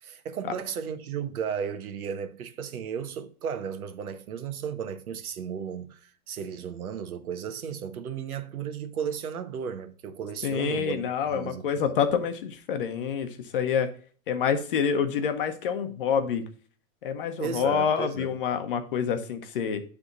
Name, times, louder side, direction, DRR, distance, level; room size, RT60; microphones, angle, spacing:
voice 1, 0.0-12.0 17.4-18.3, right 7 dB, 85° right, 1.0 m, -34 dB
voice 2, 10.4-13.9 14.3-16.4 17.0-19.8, left 7 dB, 40° left, 0.8 m, -27 dB
9.5 x 3.5 x 3.9 m
hypercardioid pair, 165°, 42 cm